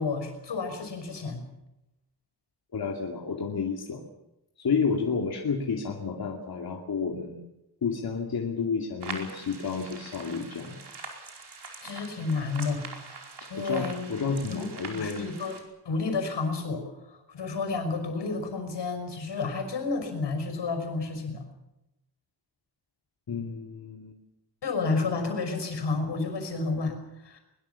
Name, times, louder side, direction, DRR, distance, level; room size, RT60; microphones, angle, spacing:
voice 1, 0.0-1.5 11.8-12.9 13.5-14.1 14.5-15.5 15.8-21.5 24.6-27.4, left 4 dB, 85° left, 6 dB, 5.8 m, -31 dB
voice 2, 2.7-4.0 4.6-7.4 7.8-10.8 13.5-15.3 23.3-24.2, left 5 dB, 60° left, 0 dB, 2.6 m, -31 dB
sound 1, 9.0-15.6, right 4 dB, 70° right, 4.9 m, -43 dB
22.5 x 22.0 x 7.0 m, 0.90 s
wide cardioid pair, 155°, 41 cm